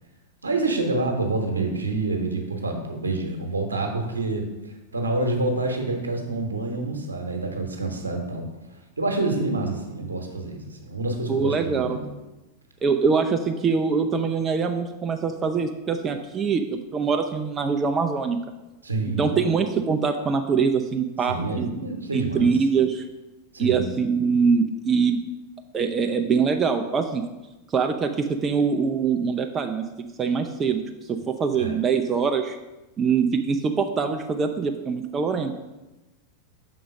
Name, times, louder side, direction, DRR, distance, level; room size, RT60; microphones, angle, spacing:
voice 1, 0.4-4.5 4.9-8.5 9.0-12.1 18.8-19.5 21.3-22.5 23.5-23.9 31.6-31.8 35.3-35.4, right 2 dB, 75° right, 3 dB, 1.0 m, -27 dB
voice 2, 11.3-12.0 12.8-18.4 19.2-21.7 22.1-23.1 23.6-25.2 25.7-27.2 27.7-30.8 31.1-32.6 33.0-35.5, right 5 dB, 25° right, 6 dB, 0.4 m, -23 dB
6.2 x 3.8 x 5.3 m, 1.1 s
figure-of-eight pair, 90°, 0 cm